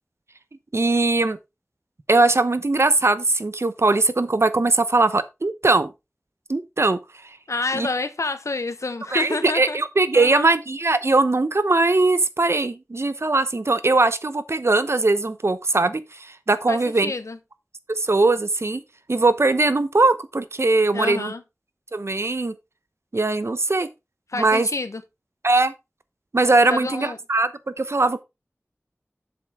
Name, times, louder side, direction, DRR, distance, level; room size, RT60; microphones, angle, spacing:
voice 1, 0.7-1.4 2.1-5.9 6.5-7.0 7.7-7.9 9.1-17.1 17.9-18.8 19.1-21.3 21.9-22.5 23.1-23.9 24.3-24.7 25.4-25.7 26.3-27.5 27.8-28.2, right 3 dB, 60° right, 0.9 m, -20 dB
voice 2, 7.5-9.8 10.1-10.5 16.7-17.4 20.9-21.4 24.3-25.0 26.7-27.2, left 3 dB, 85° left, 1.1 m, -28 dB
7.7 x 7.2 x 3.6 m
wide cardioid pair, 40°, 5 cm